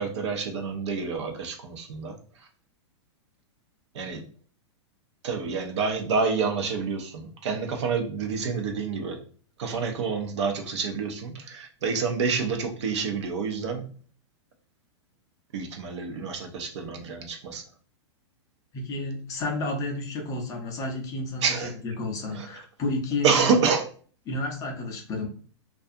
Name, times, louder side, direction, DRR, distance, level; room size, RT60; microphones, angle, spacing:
voice 1, 0.0-2.2 3.9-4.2 5.2-9.2 9.6-13.9 15.5-17.6 21.4-21.7 22.3-22.5 23.2-23.8, right 5 dB, 70° right, 4 dB, 0.7 m, -28 dB
voice 2, 18.7-21.4 21.8-23.6 24.3-25.3, left 2 dB, 20° left, 2 dB, 0.5 m, -31 dB
2.4 x 2.3 x 2.6 m, 0.42 s
supercardioid pair, 150°, 15 cm